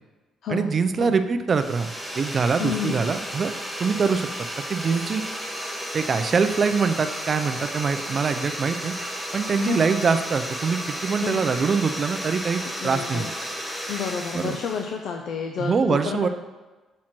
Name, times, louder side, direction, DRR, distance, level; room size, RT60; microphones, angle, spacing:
voice 1, 0.5-1.9 2.1-3.5 3.8-4.3 4.7-5.2 5.9-8.9 9.3-13.3 14.3-14.6 15.6-16.3, right 5 dB, 35° right, 9 dB, 0.4 m, -24 dB
sound 1, 1.5-14.9, equal, ahead, 0.9 m, -33 dB
voice 2, 2.6-3.1 9.6-9.9 11.2-11.4 12.8-13.3 13.9-16.3, left 6 dB, 60° left, 3 dB, 0.5 m, -30 dB
6.3 x 4.4 x 5.9 m, 1.2 s
cardioid pair, 135°, 0 cm